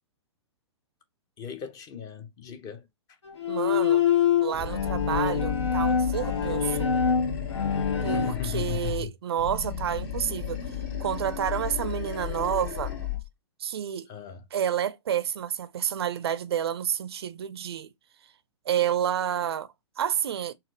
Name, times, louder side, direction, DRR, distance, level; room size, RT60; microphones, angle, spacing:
voice 1, 1.4-2.9 8.0-9.1 14.1-14.4, left 8 dB, 25° left, 0.7 m, -36 dB
Bowed string instrument, 3.3-8.3, left 7 dB, 70° left, 0.8 m, -25 dB
voice 2, 3.5-4.0 4.4-6.9 8.0-10.6 11.0-12.9 13.6-14.1 14.5-17.9 18.7-19.7 20.0-20.5, right 9 dB, 60° right, 0.4 m, -29 dB
Animal, 4.5-9.1 9.4-13.3, left 9 dB, 50° left, 1.7 m, -33 dB
4.2 x 2.5 x 2.7 m
figure-of-eight pair, 110°, 15 cm